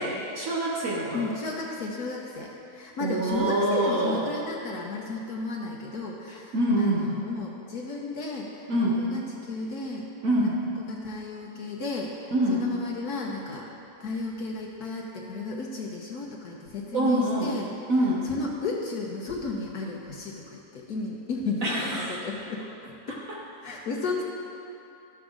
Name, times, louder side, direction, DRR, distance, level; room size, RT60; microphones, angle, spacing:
voice 1, 0.3-1.3 3.0-4.2 6.5-7.1 8.7-9.0 10.2-10.6 12.3-12.6 16.9-17.6 17.9-18.2 21.6-22.1, right 1 dB, 60° right, -4 dB, 1.3 m, -25 dB
voice 2, 1.1-8.7 9.0-10.1 10.9-13.6 14.0-17.7 18.2-23.2 23.6-24.2, left 3 dB, 70° left, -3 dB, 1.4 m, -34 dB
12.0 x 7.0 x 3.7 m, 2.8 s
omnidirectional pair, 1.7 m